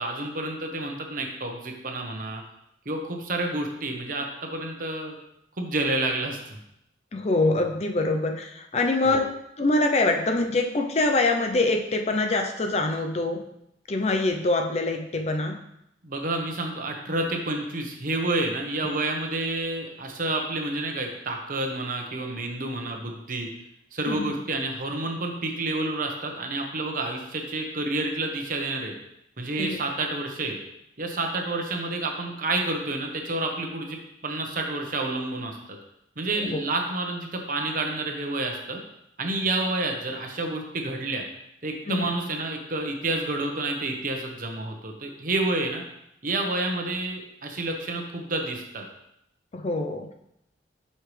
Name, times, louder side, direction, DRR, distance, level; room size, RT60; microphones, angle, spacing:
voice 1, 0.0-2.4 2.8-5.1 5.6-6.6 9.0-9.2 16.0-23.5 23.9-28.9 29.4-30.6 31.0-35.8 36.2-38.8 39.2-41.2 41.6-45.8 46.2-48.9, right 2 dB, 50° right, 2 dB, 1.0 m, -29 dB
voice 2, 7.1-13.4 13.9-15.6 24.1-24.4 29.6-29.8 36.4-36.6 41.9-42.1 49.5-50.1, left 2 dB, 35° left, 5 dB, 0.5 m, -24 dB
7.8 x 5.6 x 3.3 m, 0.80 s
head